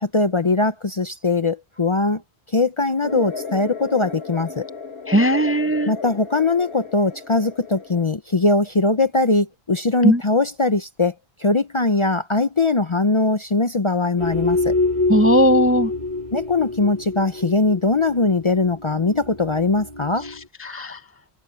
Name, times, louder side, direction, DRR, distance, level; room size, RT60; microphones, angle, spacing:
voice 1, 0.0-2.2 2.5-4.7 5.9-11.1 11.4-14.7 16.3-20.3, left 3 dB, 35° left, 0.6 m, -21 dB
sound 1, 3.0-8.0, left 4 dB, 70° left, 4.1 m, -34 dB
voice 2, 5.1-5.9 10.0-10.2 15.1-15.9 20.7-21.0, right 1 dB, 15° right, 0.5 m, -17 dB
sound 2, 14.2-20.3, left 3 dB, 40° right, 4.2 m, -25 dB
omnidirectional pair, 1.1 m